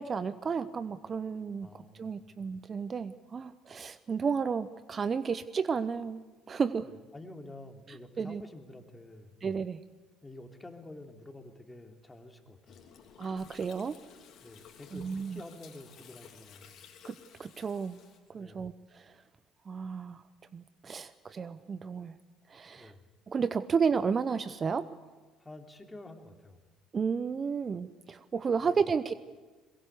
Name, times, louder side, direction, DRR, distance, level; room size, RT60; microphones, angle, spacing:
voice 1, 0.0-6.9 7.9-8.4 9.4-9.8 13.2-13.9 14.9-15.4 17.0-18.0 18.3-19.2 19.7-20.2 20.5-22.2 22.5-22.9 23.3-24.9 26.9-29.1, right 5 dB, 35° right, 15 dB, 0.8 m, -32 dB
voice 2, 1.6-2.3 6.8-9.3 10.2-12.9 14.4-16.8 18.3-18.7 22.8-23.1 25.4-26.7 28.6-28.8, left 2 dB, 15° left, 4 dB, 3.1 m, -49 dB
Gurgling, 12.7-18.2, left 7 dB, 55° left, 3.2 m, -54 dB
22.0 x 22.0 x 8.2 m, 1.3 s
hypercardioid pair, 55°, 0 cm